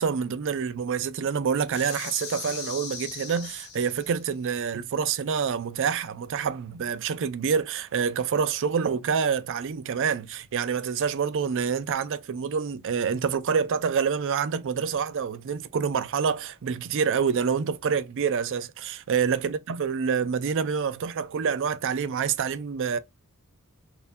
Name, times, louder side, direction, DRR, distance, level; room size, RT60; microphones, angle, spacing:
voice 1, 0.0-23.0, right 6 dB, 60° right, 0.4 m, -27 dB
sound 1, 1.7-4.2, left 6 dB, 75° left, 1.5 m, -39 dB
4.3 x 2.6 x 2.5 m
head